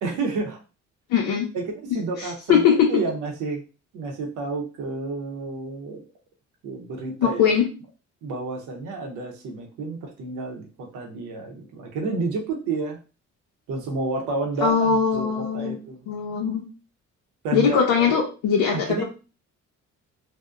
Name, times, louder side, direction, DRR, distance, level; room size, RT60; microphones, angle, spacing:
voice 1, 0.0-0.6 1.5-3.6 3.9-6.0 6.6-7.4 8.2-13.0 13.7-16.0 17.4-18.2 18.7-19.0, right 3 dB, 90° right, 2 dB, 0.8 m, -30 dB
voice 2, 1.1-1.5 2.2-2.9 7.2-7.7 14.6-15.8 16.1-16.6 17.5-19.0, left 7 dB, 90° left, 0 dB, 0.6 m, -21 dB
2.7 x 2.0 x 2.3 m, 0.33 s
cardioid pair, 90°, 30 cm